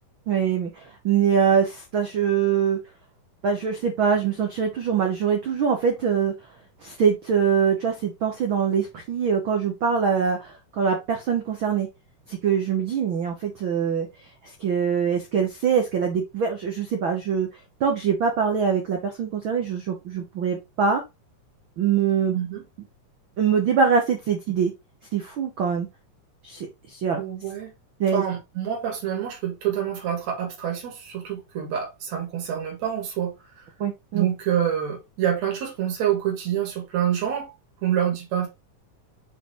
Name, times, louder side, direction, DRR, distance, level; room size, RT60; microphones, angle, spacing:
voice 1, 0.3-0.7 1.0-2.8 3.4-6.3 6.8-11.9 12.3-14.1 14.6-17.5 17.8-21.0 21.8-22.4 23.4-24.7 25.1-25.9 26.4-27.2 28.0-28.2 33.8-34.3, right 7 dB, 75° right, 1.1 m, -23 dB
voice 2, 22.3-22.6 27.2-27.7 28.1-33.6 34.1-37.5 37.8-38.5, right 9 dB, 55° right, 3.5 m, -27 dB
6.9 x 4.6 x 3.1 m
omnidirectional pair, 3.8 m